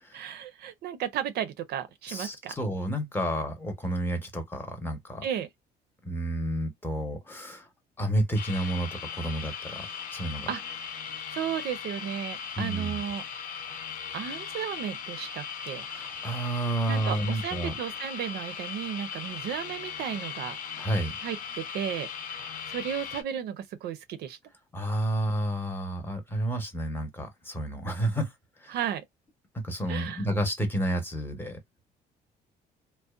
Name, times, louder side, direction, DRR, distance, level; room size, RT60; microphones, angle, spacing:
voice 1, 0.1-2.5 5.2-5.5 10.5-10.6 11.3-13.2 14.1-15.8 16.9-20.6 21.2-24.4 28.7-29.0 29.9-30.2, right 9 dB, 70° right, 0.5 m, -34 dB
voice 2, 2.1-5.2 6.0-7.7 8.0-9.9 10.1-10.5 12.6-13.0 15.9-17.7 20.7-21.2 24.7-28.3 28.6-28.8 29.6-31.6, right 1 dB, 10° left, 0.8 m, -30 dB
sound 1, 8.4-23.2, left 7 dB, 55° left, 0.5 m, -38 dB
2.5 x 2.1 x 2.4 m
cardioid pair, 110°, 17 cm